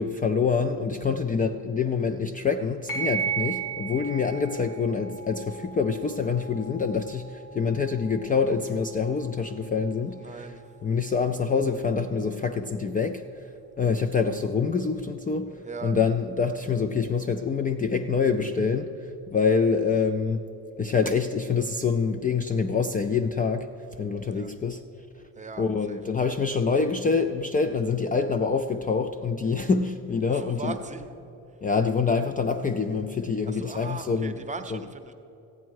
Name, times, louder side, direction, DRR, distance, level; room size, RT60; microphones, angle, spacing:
voice 1, 0.0-10.5 10.8-13.5 13.8-15.5 15.8-20.4 20.8-23.7 24.0-24.8 25.6-30.7 31.6-34.3 34.7-34.8, left 5 dB, 25° left, 8 dB, 0.4 m, -26 dB
sound 1, 2.9-11.9, right 6 dB, 80° left, 2.8 m, -37 dB
voice 2, 10.1-10.8 15.6-16.0 19.4-19.6 24.3-24.5 25.3-26.0 30.3-31.1 33.5-35.1, right 4 dB, 20° right, 7 dB, 0.8 m, -39 dB
14.0 x 9.5 x 4.7 m, 2.9 s
cardioid pair, 100°, 37 cm